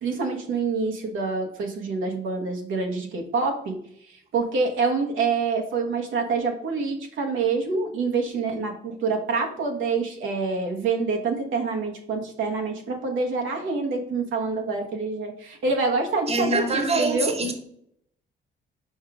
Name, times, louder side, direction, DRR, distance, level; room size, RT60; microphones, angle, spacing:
voice 1, 0.0-3.8 4.1-17.3, right 4 dB, 80° right, 1.3 m, -26 dB
voice 2, 16.3-17.5, right 2 dB, 30° right, 1.3 m, -24 dB
5.3 x 4.7 x 5.0 m
cardioid pair, 90°, 20 cm